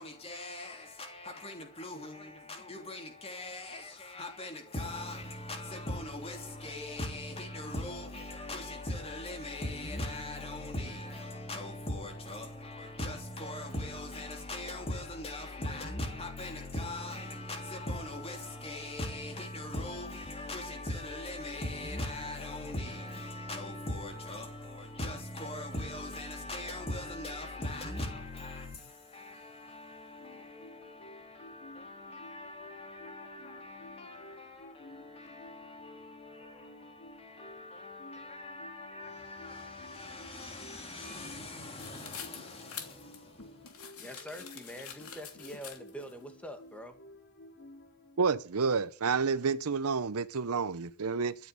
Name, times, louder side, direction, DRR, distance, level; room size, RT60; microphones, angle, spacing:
voice 1, 0.0-43.7, left 1 dB, 25° left, 3.2 m, -40 dB
sound 1, 30.1-48.2, left 1 dB, 50° left, 3.6 m, -54 dB
sound 2, 41.8-46.1, left 7 dB, 70° left, 2.9 m, -46 dB
voice 2, 44.0-47.0, equal, 5° left, 1.9 m, -45 dB
voice 3, 48.2-51.3, right 5 dB, 75° right, 0.7 m, -29 dB
13.0 x 9.6 x 8.3 m
head